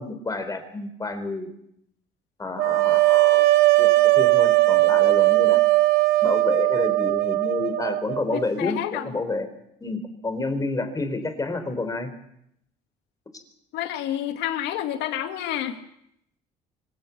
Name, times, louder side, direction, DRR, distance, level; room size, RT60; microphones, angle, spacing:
voice 1, 0.0-1.5 2.4-3.5 3.8-3.9 4.1-5.6 6.2-9.5 9.8-12.1, left 3 dB, 20° left, 9 dB, 4.3 m, -29 dB
sound 1, 2.6-8.5, right 18 dB, 80° right, 1.1 m, -19 dB
voice 2, 8.3-9.0 13.7-15.8, left 11 dB, 85° left, 7 dB, 2.4 m, -29 dB
24.5 x 16.0 x 8.6 m, 0.74 s
cardioid pair, 110°, 17 cm